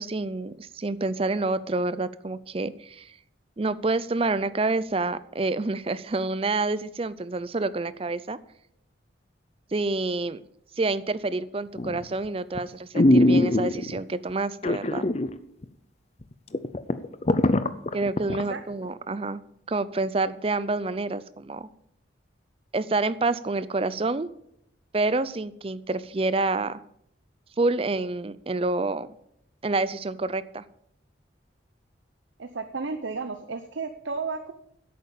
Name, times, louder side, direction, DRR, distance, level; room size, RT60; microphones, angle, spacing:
voice 1, 0.0-3.1 3.6-8.4 9.7-10.4 10.8-15.1 17.9-19.4 19.7-21.7 22.7-24.3 24.9-26.8 27.6-29.1 29.6-30.6, right 3 dB, 30° right, 16 dB, 0.5 m, -28 dB
sound 1, 11.8-12.1 12.6-12.7 12.9-14.0 14.6-15.3 15.6-15.7 16.2-16.3 16.5-18.4 18.9-19.0, left 1 dB, 35° left, 0.6 m, -21 dB
voice 2, 32.4-34.5, right 4 dB, 80° right, 8 dB, 0.8 m, -33 dB
11.0 x 8.6 x 7.1 m, 0.74 s
head